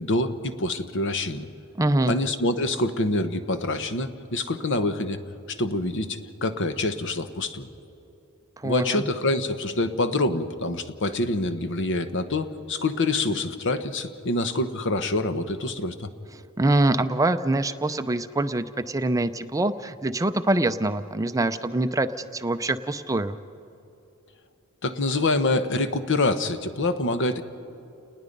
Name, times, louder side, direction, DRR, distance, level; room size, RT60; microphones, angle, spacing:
voice 1, 0.0-1.5 2.1-5.2 5.5-7.7 8.6-16.1 24.8-27.4, left 2 dB, 60° left, 10 dB, 1.0 m, -26 dB
voice 2, 1.8-2.1 8.6-9.0 16.6-23.4, right 2 dB, 15° right, 10 dB, 0.5 m, -24 dB
30.0 x 20.0 x 5.3 m, 3.0 s
head